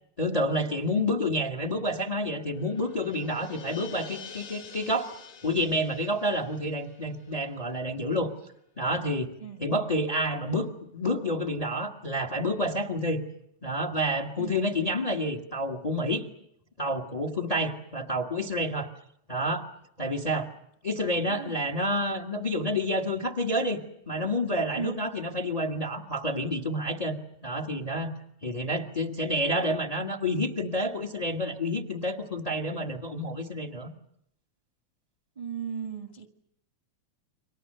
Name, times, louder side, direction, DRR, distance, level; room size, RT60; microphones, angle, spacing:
voice 1, 0.2-5.1 5.4-8.3 8.8-9.3 9.6-13.2 13.6-16.3 16.8-18.9 19.3-19.7 20.0-20.5 20.8-23.8 24.1-28.2 28.4-33.9, equal, 20° left, 4 dB, 1.1 m, -29 dB
sound 1, 1.7-8.2 8.5-8.6, left 6 dB, 60° left, 3.6 m, -48 dB
voice 2, 21.0-21.6 24.7-25.0 35.3-36.3, right 7 dB, 20° right, 4 dB, 1.2 m, -37 dB
29.5 x 24.5 x 6.7 m, 0.73 s
omnidirectional pair, 3.4 m